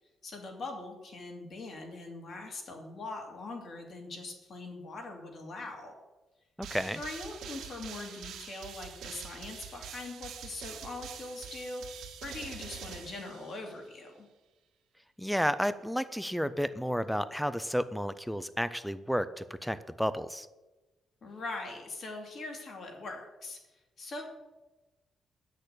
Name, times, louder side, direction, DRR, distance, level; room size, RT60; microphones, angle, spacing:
voice 1, 0.2-5.9 6.9-14.3 21.2-23.6 24.0-24.2, left 2 dB, 45° left, 2 dB, 2.3 m, -42 dB
voice 2, 6.6-7.0 15.2-20.5, equal, ahead, 14 dB, 0.3 m, -32 dB
sound 1, 6.6-13.9, right 7 dB, 90° right, 1.8 m, -45 dB
10.0 x 6.6 x 8.2 m, 1.1 s
cardioid pair, 175°, 0 cm